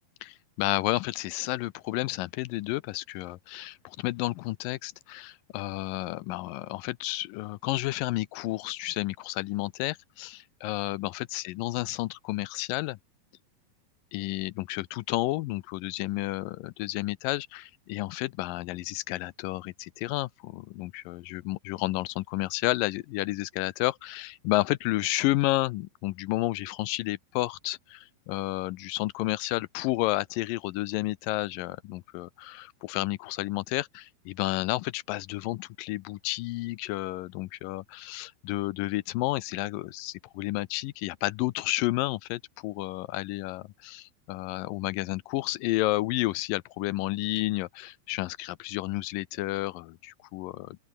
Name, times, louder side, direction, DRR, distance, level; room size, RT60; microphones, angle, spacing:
voice 1, 0.2-13.0 14.1-50.8, left 18 dB, 85° left, 2.0 m, -31 dB
open air
omnidirectional pair, 4.7 m